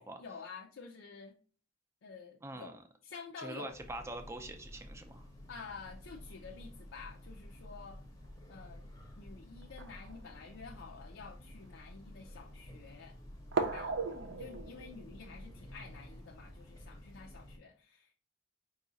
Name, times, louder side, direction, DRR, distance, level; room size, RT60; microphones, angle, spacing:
voice 1, 0.0-1.4 2.0-3.8 5.5-8.0 8.5-8.9 9.2-13.2 13.7-13.9 14.3-18.1, left 5 dB, 70° left, -1 dB, 0.5 m, -50 dB
voice 2, 2.4-2.8 3.4-5.3, right 1 dB, 15° right, 6 dB, 0.4 m, -44 dB
Train, 3.7-17.6, left 1 dB, 20° left, 0.7 m, -51 dB
sound 1, 8.2-8.3 9.6-10.9 11.6-11.7 13.5-16.7, right 4 dB, 65° right, 0.6 m, -39 dB
4.7 x 2.4 x 3.9 m, 0.40 s
head